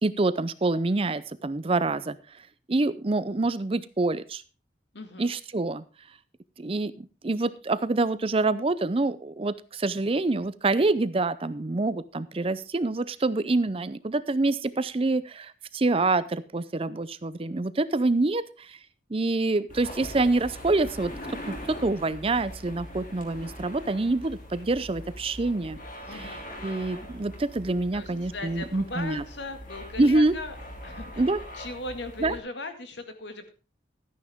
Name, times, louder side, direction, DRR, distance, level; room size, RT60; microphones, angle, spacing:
voice 1, 0.0-2.2 2.7-4.4 5.2-5.8 6.6-18.8 19.1-21.1 21.5-25.8 26.1-29.2 30.0-30.4 31.2-31.4 32.2-32.4, right 2 dB, 30° right, 16 dB, 0.5 m, -26 dB
voice 2, 4.9-5.3 26.1-26.4 27.9-30.6 30.8-33.5, left 2 dB, 70° left, 7 dB, 2.0 m, -38 dB
sound 1, 19.7-32.4, equal, 45° left, 2.8 m, -42 dB
13.5 x 9.8 x 3.6 m, 0.34 s
head